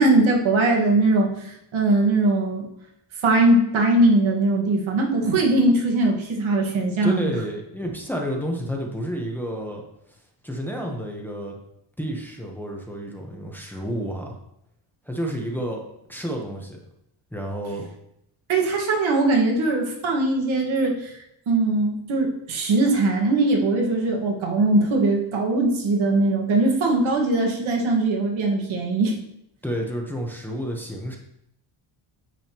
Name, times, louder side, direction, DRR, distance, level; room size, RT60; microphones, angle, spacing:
voice 1, 0.0-2.7 3.2-7.3 18.5-21.1 21.5-29.2, right 2 dB, 85° right, 0 dB, 1.7 m, -20 dB
voice 2, 7.0-9.8 10.4-11.6 12.0-14.4 15.1-16.8 17.3-17.9 29.6-31.2, equal, 5° left, -1 dB, 0.9 m, -30 dB
9.1 x 6.4 x 2.9 m, 0.78 s
wide cardioid pair, 160°, 46 cm